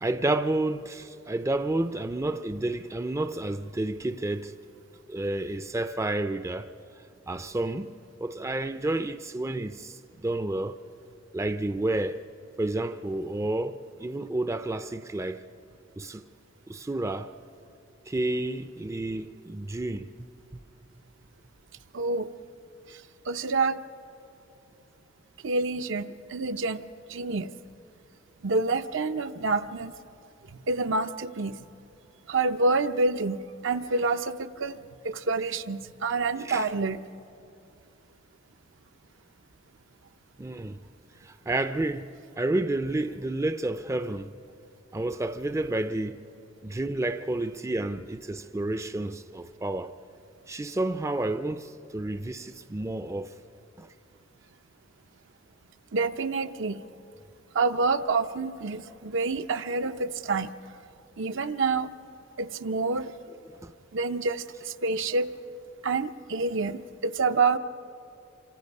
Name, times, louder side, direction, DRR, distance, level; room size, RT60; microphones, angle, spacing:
voice 1, 0.0-4.5 5.1-6.7 7.3-7.9 8.2-10.8 11.3-12.2 12.6-15.4 16.0-16.2 16.7-17.3 18.1-20.6 36.4-36.7 40.4-40.8 41.2-42.1 42.4-44.3 44.9-46.2 46.6-49.9 50.5-53.3 53.8-53.9 63.6-63.7, right 2 dB, 15° right, 0.4 m, -30 dB
voice 2, 21.9-22.3 22.9-23.0 23.3-23.8 25.4-26.8 27.1-27.5 28.4-29.9 30.5-31.6 32.3-33.4 33.6-37.0 55.9-56.8 57.5-60.5 61.2-61.9 62.4-63.1 63.9-65.3 65.8-67.6, right 3 dB, 65° right, 0.7 m, -27 dB
27.0 x 25.5 x 5.4 m
head